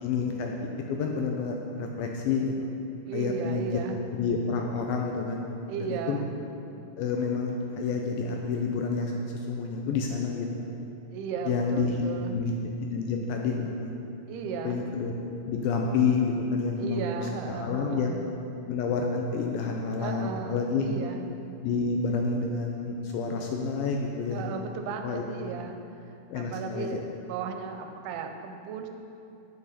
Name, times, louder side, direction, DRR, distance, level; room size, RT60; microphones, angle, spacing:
voice 1, 0.0-2.7 3.1-3.7 4.1-5.4 5.8-6.2 7.0-10.7 11.5-12.0 12.3-14.0 14.6-15.1 15.5-18.2 18.7-20.9 21.6-24.5 25.0-25.2 26.3-27.0, left 4 dB, 80° left, 1 dB, 2.2 m, -29 dB
voice 2, 3.1-4.0 5.7-6.3 11.1-12.4 14.3-14.8 16.8-18.2 20.0-21.3 24.3-25.8 26.3-28.9, right 6 dB, 90° right, 5 dB, 2.7 m, -35 dB
8.9 x 8.4 x 4.2 m, 2.6 s
omnidirectional pair, 4.6 m